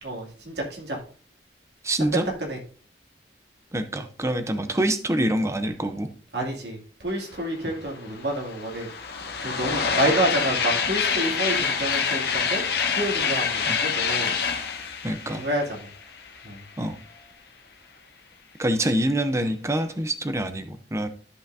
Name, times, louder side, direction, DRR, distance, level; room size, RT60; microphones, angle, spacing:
voice 1, 0.0-1.0 2.1-2.6 6.3-8.9 9.4-12.6 12.9-14.3 15.3-15.9 16.4-16.6, right 1 dB, 75° right, 0 dB, 2.5 m, -28 dB
voice 2, 1.8-2.2 3.7-6.1 13.7-13.8 15.0-15.4 16.8-17.0 18.6-21.1, right 1 dB, 15° right, 9 dB, 0.7 m, -25 dB
sound 1, 7.6-7.7 8.0-16.6, left 6 dB, 65° left, 1.3 m, -26 dB
13.0 x 5.7 x 2.6 m, 0.42 s
head